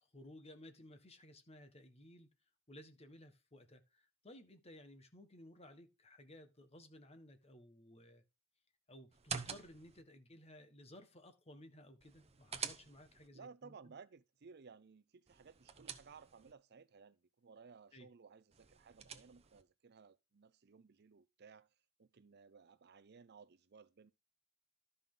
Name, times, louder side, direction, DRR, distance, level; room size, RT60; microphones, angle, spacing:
voice 1, 0.1-2.3 2.7-8.2 8.9-14.0 17.9-18.1, left 1 dB, 30° left, 1.5 m, -58 dB
sound 1, 9.1-10.0 12.0-13.3 15.3-16.5 18.5-19.6, right 7 dB, 30° right, 0.9 m, -47 dB
voice 2, 13.3-21.7 22.0-24.1, right 5 dB, 55° right, 0.6 m, -59 dB
12.5 x 5.5 x 3.9 m
head